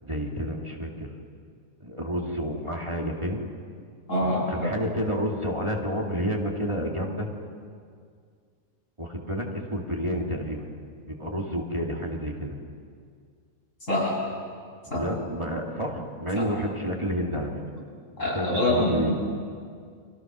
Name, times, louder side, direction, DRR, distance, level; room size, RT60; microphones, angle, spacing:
voice 1, 0.0-1.1 1.8-3.4 4.2-7.3 9.0-10.7 11.1-12.6 14.9-17.6 18.3-19.1, equal, 20° right, -1 dB, 2.4 m, -30 dB
voice 2, 4.1-4.7 13.9-14.2 14.9-15.1 16.3-16.4 18.2-19.1, left 1 dB, 75° left, -5 dB, 8.6 m, -25 dB
30.0 x 25.0 x 6.2 m, 2.2 s
omnidirectional pair, 1.4 m